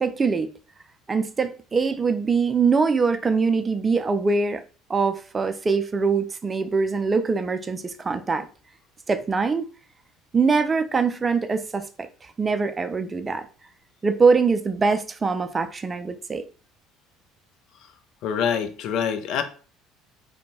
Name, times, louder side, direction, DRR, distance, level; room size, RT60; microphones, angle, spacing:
voice 1, 0.0-0.5 1.1-4.6 4.9-8.5 9.1-9.7 10.3-13.5 14.0-16.4, right 4 dB, 25° right, 0.3 m, -23 dB
voice 2, 18.2-19.4, left 7 dB, 60° left, 0.4 m, -25 dB
2.6 x 2.1 x 2.9 m
hypercardioid pair, 60°, 0 cm